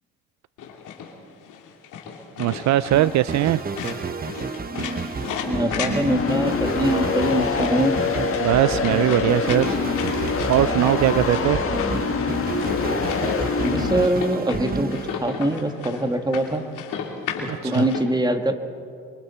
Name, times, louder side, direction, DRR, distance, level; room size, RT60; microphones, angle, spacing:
sound 1, 0.6-18.0, left 6 dB, 85° left, 2.7 m, -34 dB
voice 1, 2.4-3.6 8.4-9.8 10.5-11.6 17.5-17.9, right 14 dB, 65° right, 17 dB, 0.4 m, -20 dB
sound 2, 2.9-15.8, right 4 dB, 30° right, 1.1 m, -31 dB
sound 3, 5.1-14.1, left 5 dB, 45° left, 1.5 m, -25 dB
voice 2, 5.5-7.9 13.6-16.6 17.6-18.5, right 1 dB, 15° right, 6 dB, 1.8 m, -23 dB
28.0 x 23.5 x 4.3 m, 2.5 s
cardioid pair, 90°, 30 cm